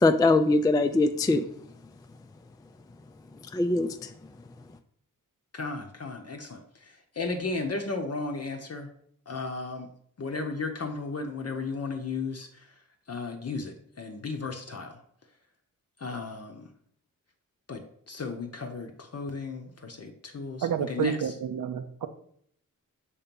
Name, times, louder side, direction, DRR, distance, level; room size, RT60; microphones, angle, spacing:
voice 1, 0.0-1.4 3.5-4.1, left 2 dB, 10° left, 7 dB, 0.3 m, -22 dB
voice 2, 5.5-8.9 9.3-9.9 10.2-12.7 13.1-15.0 16.0-16.7 17.7-21.3, left 3 dB, 45° left, 3 dB, 0.7 m, -35 dB
voice 3, 20.6-22.1, right 7 dB, 75° right, 10 dB, 0.7 m, -29 dB
6.7 x 2.9 x 5.2 m, 0.66 s
wide cardioid pair, 85°, 34 cm